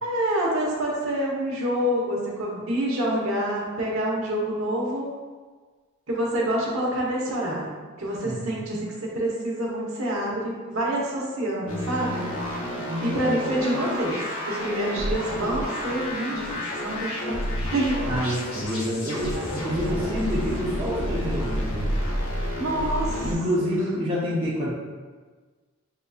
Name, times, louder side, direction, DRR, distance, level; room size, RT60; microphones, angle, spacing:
voice 1, 0.0-5.1 6.1-7.7 8.0-12.2 12.7-14.2 14.5-17.4 17.7-18.2 22.6-23.3 23.6-23.8, right 1 dB, 70° right, -4 dB, 1.1 m, -27 dB
voice 2, 8.2-8.5 12.8-13.5 18.1-21.9 23.2-24.7, equal, 25° right, -7 dB, 0.6 m, -28 dB
sound 1, 11.7-23.3, left 1 dB, 75° left, 0.9 m, -30 dB
6.8 x 2.6 x 2.4 m, 1.4 s
head